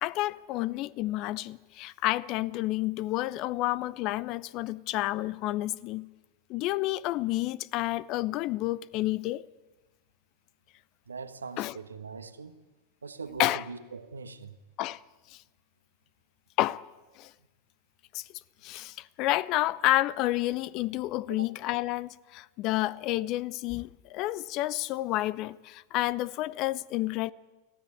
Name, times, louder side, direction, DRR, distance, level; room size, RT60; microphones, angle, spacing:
voice 1, 0.0-6.1 6.5-9.4 11.6-11.8 13.4-13.6 14.8-15.0 16.6-16.8 17.2-17.3 18.1-18.2 18.6-27.3, left 17 dB, 40° left, 0.6 m, -30 dB
voice 2, 11.1-12.5 13.0-14.6 21.3-21.5, right 5 dB, 75° right, 1.3 m, -41 dB
23.5 x 15.5 x 9.6 m
figure-of-eight pair, 90°, 0 cm